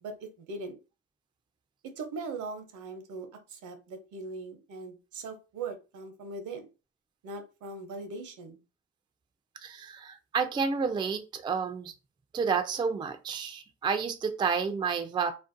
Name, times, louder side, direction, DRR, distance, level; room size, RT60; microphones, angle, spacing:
voice 1, 0.0-0.8 1.8-6.6 7.2-8.6, right 3 dB, 75° right, 6 dB, 0.7 m, -40 dB
voice 2, 9.6-11.9 12.3-15.3, right 6 dB, 15° right, 8 dB, 0.3 m, -30 dB
2.5 x 2.1 x 2.5 m, 0.30 s
cardioid pair, 90°, 30 cm